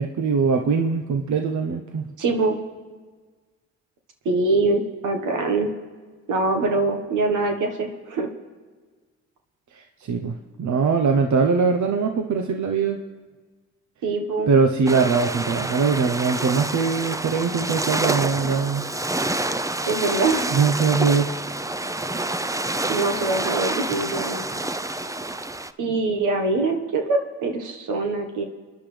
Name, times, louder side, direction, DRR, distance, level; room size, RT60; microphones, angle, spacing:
voice 1, 0.0-2.1 9.7-13.0 14.5-18.9 20.5-21.3, right 5 dB, 70° right, 4 dB, 0.9 m, -22 dB
voice 2, 2.2-2.6 4.2-5.7 6.3-8.3 14.0-14.5 19.8-20.5 22.9-24.4 25.8-28.4, right 3 dB, 85° right, 3 dB, 1.5 m, -23 dB
sound 1, 14.9-25.7, right 2 dB, 10° right, 0.6 m, -28 dB
30.0 x 10.5 x 3.3 m, 1.4 s
cardioid pair, 60°, 30 cm